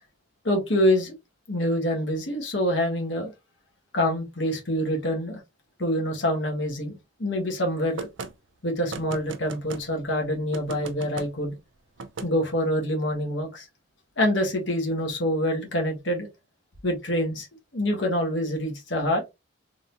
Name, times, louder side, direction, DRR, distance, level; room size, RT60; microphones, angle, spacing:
voice 1, 0.4-1.1 1.5-3.3 3.9-5.4 5.8-8.1 8.6-11.6 12.2-13.7 14.2-16.3 16.8-17.5 17.7-19.2, equal, 70° left, 1.5 m, -26 dB
sound 1, 8.0-8.3 8.9-9.8 10.5-11.3 12.0-12.3, right 4 dB, 80° right, 0.6 m, -36 dB
3.9 x 3.7 x 2.6 m
head